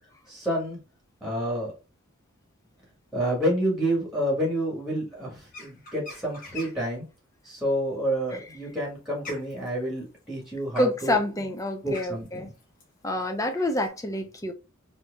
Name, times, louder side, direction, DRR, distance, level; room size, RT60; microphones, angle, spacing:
voice 1, 0.3-0.8 1.2-1.7 3.1-7.1 7.4-11.2 11.8-12.5, equal, ahead, 1.3 m, -29 dB
sound 1, 5.5-6.9 8.3-13.9, left 2 dB, 40° left, 1.1 m, -45 dB
voice 2, 10.8-12.5 13.0-14.5, left 1 dB, 15° left, 0.5 m, -27 dB
4.4 x 2.7 x 2.3 m
head